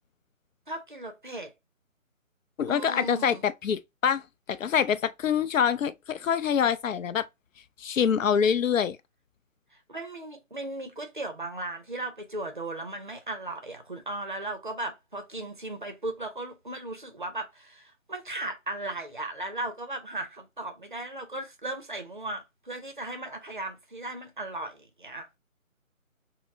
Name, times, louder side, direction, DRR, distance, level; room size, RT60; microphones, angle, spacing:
voice 1, 0.7-1.5 2.7-3.5 9.7-25.4, right 2 dB, 40° right, 0.5 m, -37 dB
voice 2, 2.6-4.2 4.5-7.3 7.8-9.0, left 8 dB, 70° left, 0.5 m, -25 dB
4.0 x 2.0 x 2.5 m
figure-of-eight pair, 160°, 41 cm